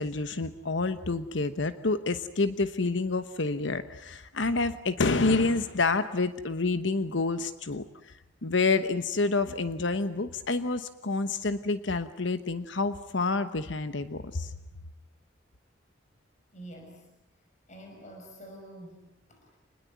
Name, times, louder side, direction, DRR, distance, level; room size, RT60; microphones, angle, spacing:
voice 1, 0.0-8.1 8.4-14.5, left 3 dB, 70° left, 11 dB, 1.1 m, -28 dB
voice 2, 16.5-17.1 17.7-19.6, right 1 dB, 40° left, 2 dB, 5.8 m, -47 dB
27.5 x 20.5 x 9.3 m, 0.89 s
head